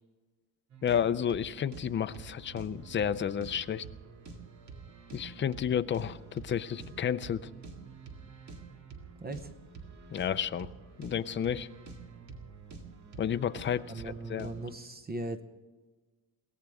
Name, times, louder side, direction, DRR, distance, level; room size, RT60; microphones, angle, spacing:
sound 1, 0.7-14.7, right 4 dB, 50° right, 2.1 m, -48 dB
voice 1, 0.8-3.8 5.1-7.5 10.1-10.7 11.0-11.7 13.2-13.9 14.3-14.5, left 8 dB, 30° left, 11 dB, 0.4 m, -31 dB
voice 2, 9.2-9.5 13.9-15.4, right 2 dB, 25° right, 9 dB, 0.8 m, -38 dB
22.5 x 17.0 x 3.5 m, 1.3 s
wide cardioid pair, 175°, 37 cm